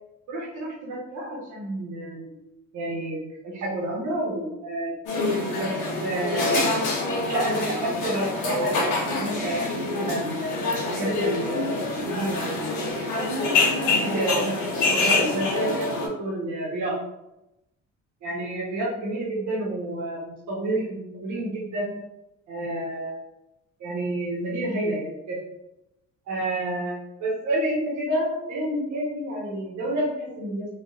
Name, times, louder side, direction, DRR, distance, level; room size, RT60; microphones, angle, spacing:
voice 1, 0.3-2.3 2.7-4.9 5.5-5.7 6.0-6.7 7.3-10.5 10.9-12.9 14.0-16.9 18.2-21.9 22.5-23.2 23.8-25.4 26.3-30.7, right 1 dB, 75° right, -6 dB, 1.0 m, -29 dB
sound 1, 5.1-16.1, left 2 dB, 80° left, 0.8 m, -26 dB
3.4 x 2.3 x 2.3 m, 0.88 s
cardioid pair, 90°, 30 cm